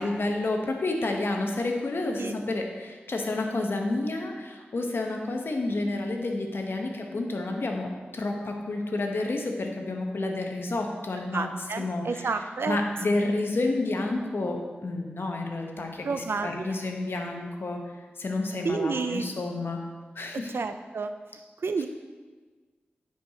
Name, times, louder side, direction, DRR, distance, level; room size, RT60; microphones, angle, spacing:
voice 1, 0.0-11.5 11.8-12.3 12.7-17.8 18.2-19.8 20.1-20.5, left 2 dB, 65° left, 2 dB, 0.9 m, -30 dB
voice 2, 11.3-12.8 16.0-16.8 18.6-19.3 20.5-21.1 21.6-21.9, right 4 dB, 70° right, 8 dB, 0.4 m, -30 dB
9.3 x 4.6 x 2.8 m, 1.4 s
cardioid pair, 40°, 4 cm